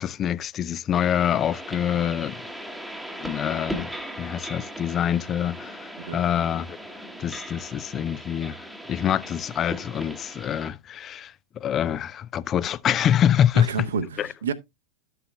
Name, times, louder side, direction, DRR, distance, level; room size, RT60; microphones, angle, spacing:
voice 1, 0.0-2.4 3.2-3.9 4.2-6.8 7.2-8.6 8.9-13.9 14.2-14.3, left 9 dB, 30° left, 0.5 m, -25 dB
sound 1, 0.9-10.7, equal, ahead, 1.1 m, -38 dB
voice 2, 13.5-14.5, right 5 dB, 65° right, 0.9 m, -29 dB
12.5 x 6.8 x 2.2 m
figure-of-eight pair, 90°, 0 cm